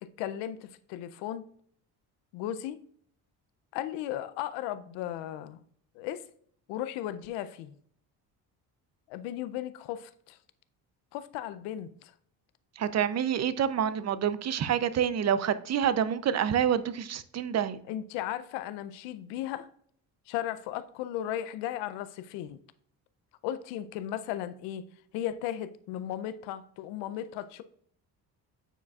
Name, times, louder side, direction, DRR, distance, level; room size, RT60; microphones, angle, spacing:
voice 1, 0.0-1.5 2.3-2.8 3.7-5.6 6.0-6.2 6.7-7.7 9.1-10.4 11.1-12.1 17.9-19.7 20.3-22.6 23.4-24.9 25.1-27.6, left 11 dB, 85° left, 0.6 m, -36 dB
voice 2, 12.8-17.8, right 9 dB, 40° right, 0.5 m, -27 dB
8.8 x 4.7 x 2.3 m
supercardioid pair, 75°, 42 cm